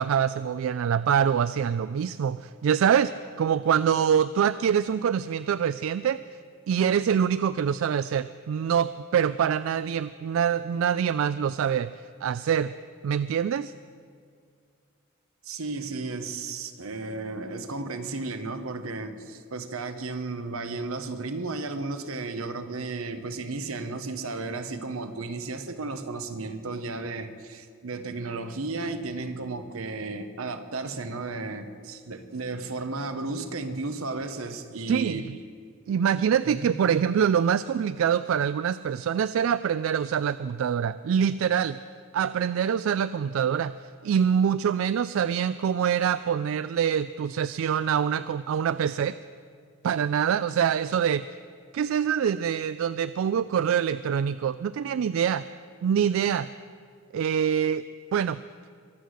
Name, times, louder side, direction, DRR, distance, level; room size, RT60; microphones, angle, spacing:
voice 1, 0.0-3.1 3.4-6.2 6.7-11.9 12.2-12.7 13.0-13.7 31.9-32.0 34.9-35.2 35.9-41.8 42.1-43.7 44.0-49.1 49.8-51.2 51.7-55.4 55.8-56.5 57.1-57.8 58.1-58.4, right 8 dB, 70° right, 15 dB, 0.3 m, -25 dB
voice 2, 15.4-31.7 32.1-35.4 36.4-36.8, right 3 dB, 90° right, 9 dB, 1.1 m, -34 dB
22.5 x 8.3 x 6.4 m, 2.2 s
head